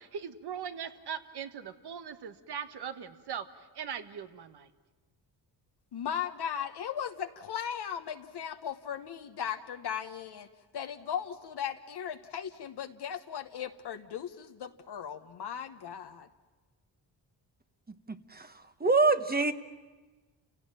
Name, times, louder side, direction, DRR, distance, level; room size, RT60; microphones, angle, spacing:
voice 1, 0.0-4.7, right 7 dB, 60° right, 9 dB, 1.5 m, -40 dB
voice 2, 5.9-10.5 10.7-16.3, left 8 dB, 65° left, 6 dB, 1.2 m, -37 dB
voice 3, 18.1-18.5 18.8-19.5, right 3 dB, 20° right, 9 dB, 1.3 m, -25 dB
29.5 x 17.0 x 8.9 m, 1.3 s
cardioid pair, 80°, 43 cm